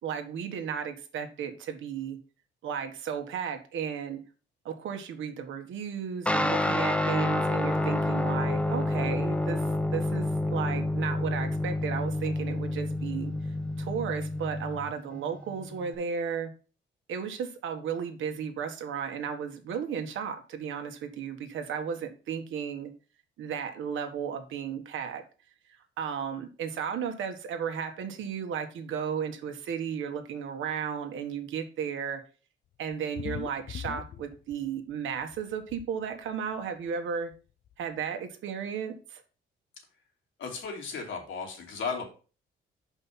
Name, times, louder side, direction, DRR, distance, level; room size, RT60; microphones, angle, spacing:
voice 1, 0.0-2.2 2.6-4.2 4.6-13.3 13.8-16.5 17.1-22.9 23.4-25.2 26.0-32.2 32.8-37.3 37.8-39.2, right 7 dB, 75° right, 5 dB, 1.5 m, -34 dB
Guitar, 6.3-15.9, left 1 dB, 5° left, 0.9 m, -29 dB
sound 1, 32.9-34.9 35.2-35.9 36.9-37.0 37.3-37.4 37.7-37.8, left 9 dB, 50° left, 0.4 m, -40 dB
voice 2, 40.4-42.1, left 5 dB, 75° left, 0 dB, 2.8 m, -35 dB
5.6 x 5.3 x 5.8 m, 0.36 s
cardioid pair, 90°, 20 cm